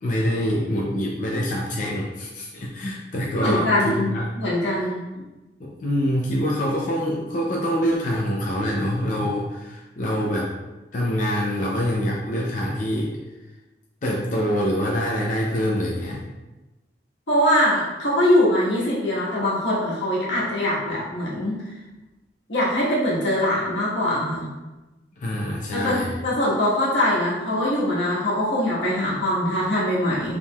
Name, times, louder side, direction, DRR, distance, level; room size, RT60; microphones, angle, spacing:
voice 1, 0.0-4.2 5.1-5.2 5.6-10.6 10.9-13.1 14.0-16.2 25.2-26.2, equal, 45° left, -3 dB, 0.5 m, -25 dB
voice 2, 3.4-4.1 4.4-5.0 17.3-21.6 22.5-24.4 25.7-30.4, left 1 dB, 85° left, -6 dB, 1.4 m, -22 dB
4.5 x 3.5 x 2.3 m, 1.1 s
head